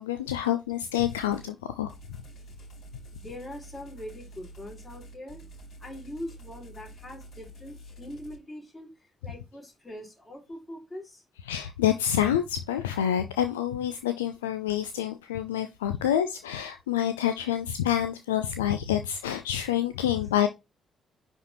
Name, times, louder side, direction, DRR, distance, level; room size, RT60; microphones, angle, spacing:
voice 1, 0.0-1.9 11.5-20.5, left 10 dB, 75° left, 0.4 m, -27 dB
sound 1, 1.0-1.5 1.9-8.4, right 1 dB, 55° left, 5.1 m, -47 dB
voice 2, 3.1-5.4 5.8-11.2, left 1 dB, 20° left, 4.3 m, -42 dB
9.9 x 4.3 x 3.0 m
figure-of-eight pair, 40°, 0 cm